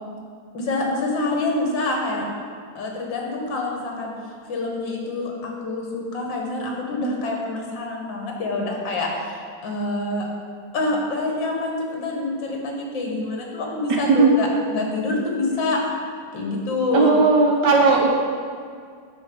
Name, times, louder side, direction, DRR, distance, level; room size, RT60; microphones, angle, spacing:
voice 1, 0.5-2.3 2.8-4.1 4.5-10.3 10.7-15.8 16.3-17.1 17.9-18.1, left 2 dB, 75° left, 0 dB, 2.1 m, -26 dB
voice 2, 16.9-18.1, right 4 dB, 70° right, 1 dB, 1.3 m, -16 dB
9.2 x 3.8 x 7.0 m, 2.1 s
omnidirectional pair, 2.0 m